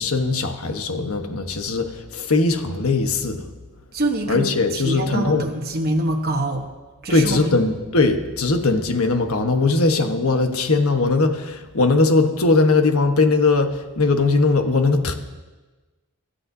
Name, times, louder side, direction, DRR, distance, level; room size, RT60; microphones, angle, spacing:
voice 1, 0.0-3.4 4.3-5.5 7.1-15.1, left 3 dB, 75° left, 6 dB, 1.3 m, -20 dB
voice 2, 3.9-6.7 7.0-7.6, right 1 dB, 45° right, 1 dB, 1.2 m, -25 dB
25.0 x 13.0 x 2.8 m, 1.2 s
head